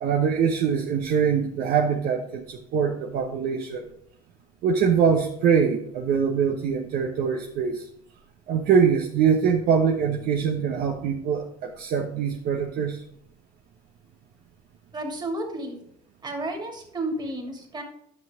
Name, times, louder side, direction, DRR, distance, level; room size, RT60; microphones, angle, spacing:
voice 1, 0.0-3.8 4.6-7.9 8.5-13.0, right 6 dB, 60° right, 1 dB, 1.0 m, -23 dB
voice 2, 14.9-15.8 16.2-17.8, right 1 dB, 25° right, 2 dB, 2.5 m, -32 dB
10.5 x 6.0 x 3.6 m, 0.71 s
hypercardioid pair, 75°, 17 cm